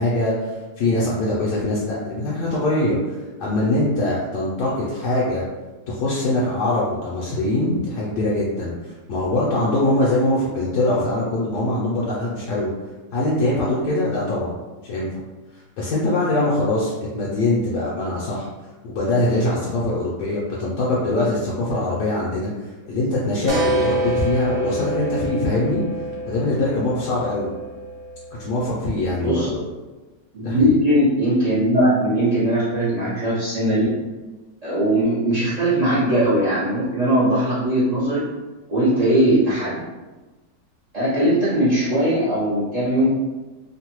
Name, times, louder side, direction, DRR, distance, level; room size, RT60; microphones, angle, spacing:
voice 1, 0.0-5.4 5.9-12.7 13.1-14.6 14.8-15.1 15.8-18.5 18.8-22.5 22.8-25.8 26.3-27.5 28.4-29.6 30.4-30.7, left 1 dB, 75° left, -6 dB, 1.1 m, -22 dB
sound 1, 23.5-28.9, right 1 dB, 65° right, 1.1 m, -27 dB
voice 2, 30.3-33.8 34.6-38.2 38.7-39.8 40.9-43.1, right 1 dB, 45° right, -12 dB, 0.5 m, -19 dB
3.0 x 2.1 x 2.9 m, 1.2 s
omnidirectional pair, 1.9 m